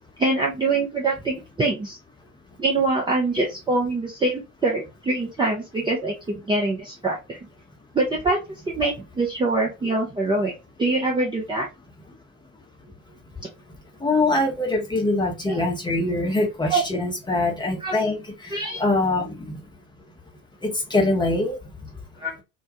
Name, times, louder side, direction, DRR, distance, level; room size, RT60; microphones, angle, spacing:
voice 1, 0.2-2.0 2.6-7.4 7.9-8.4 8.7-10.5 10.8-11.7 15.5-15.6 16.7-16.8 17.8-18.0 18.5-18.8 22.2-22.4, right 2 dB, 10° right, -2 dB, 0.5 m, -24 dB
voice 2, 13.1-13.4 14.0-19.7 20.6-21.7, left 2 dB, 10° left, 1 dB, 0.8 m, -24 dB
2.3 x 2.2 x 2.7 m, 0.24 s
figure-of-eight pair, 65°, 40 cm